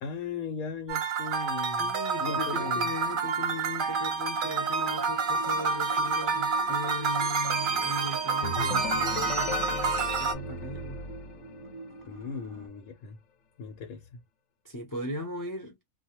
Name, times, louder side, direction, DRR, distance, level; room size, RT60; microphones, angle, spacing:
voice 1, 0.0-1.9 2.2-2.9 12.1-13.2 13.6-14.2, left 5 dB, 90° left, 1.0 m, -37 dB
sound 1, 0.9-10.3, right 4 dB, 65° right, 0.5 m, -28 dB
voice 2, 1.8-11.0 14.6-15.8, left 1 dB, 30° left, 0.3 m, -38 dB
sound 2, 2.3-12.7, right 3 dB, 30° right, 0.7 m, -46 dB
sound 3, 8.4-12.1, left 4 dB, 65° left, 0.8 m, -36 dB
2.3 x 2.1 x 2.8 m
omnidirectional pair, 1.4 m